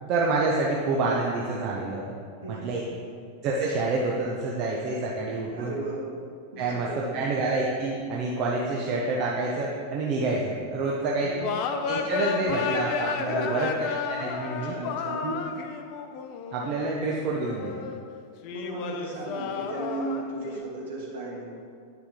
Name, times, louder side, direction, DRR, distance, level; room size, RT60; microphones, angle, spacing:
voice 1, 0.0-2.1 2.6-2.8 3.4-5.7 6.6-11.3 11.9-14.7 15.2-15.4 16.5-17.8, right 3 dB, 40° right, -3 dB, 0.9 m, -28 dB
voice 2, 2.4-2.7 5.5-6.0 6.5-7.2 11.2-11.5 13.3-13.6 14.6-15.2 18.5-21.5, right 2 dB, 60° right, -4 dB, 2.1 m, -35 dB
sound 1, 11.4-18.0 18.4-20.6, left 6 dB, 45° left, 0.6 m, -32 dB
9.6 x 5.9 x 3.7 m, 2.3 s
figure-of-eight pair, 90°, 0 cm